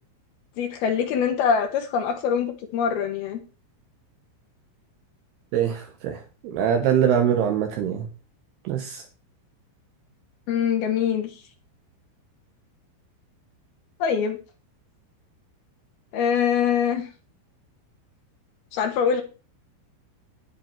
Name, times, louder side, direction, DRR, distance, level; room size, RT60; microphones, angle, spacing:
voice 1, 0.6-3.4 10.5-11.3 14.0-14.4 16.1-17.1 18.7-19.2, left 7 dB, 75° left, 2.4 m, -23 dB
voice 2, 5.5-6.1 6.4-8.0 8.7-9.0, right 9 dB, 75° right, 2.4 m, -23 dB
10.5 x 9.8 x 4.4 m
omnidirectional pair, 6.0 m